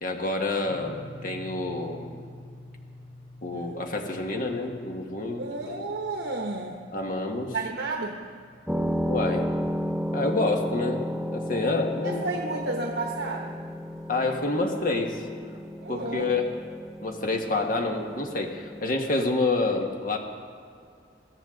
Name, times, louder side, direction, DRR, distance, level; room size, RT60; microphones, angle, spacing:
voice 1, 0.0-2.1 3.4-5.9 6.9-7.6 9.1-9.5 10.1-11.0 11.3-12.2 14.1-15.2 15.9-16.6 17.0-20.2, left 2 dB, 50° left, 2 dB, 1.7 m, -28 dB
sound 1, 0.6-10.8, equal, 85° left, 2.7 m, -48 dB
voice 2, 5.4-6.8 7.5-8.2 12.0-13.6 15.8-16.3, right 3 dB, 80° right, 1 dB, 1.1 m, -32 dB
sound 2, 8.7-18.9, equal, ahead, 0.7 m, -33 dB
22.0 x 14.5 x 3.8 m, 2.3 s
head